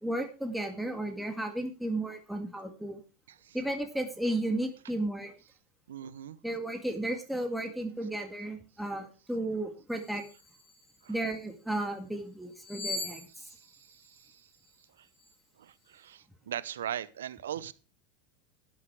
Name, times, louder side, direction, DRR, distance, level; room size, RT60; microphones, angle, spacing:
voice 1, 0.0-3.0 3.5-5.3 6.4-10.2 11.1-13.2, right 1 dB, 5° right, 4 dB, 2.0 m, -34 dB
voice 2, 5.9-6.4 11.0-11.1 13.4-14.5 15.0-15.1 15.6-17.7, right 10 dB, 85° right, 17 dB, 0.8 m, -40 dB
sound 1, 9.9-11.4 12.5-14.7 15.1-15.3, left 2 dB, 15° left, 6.0 m, -42 dB
12.5 x 10.0 x 4.7 m, 0.33 s
hypercardioid pair, 105°, 0 cm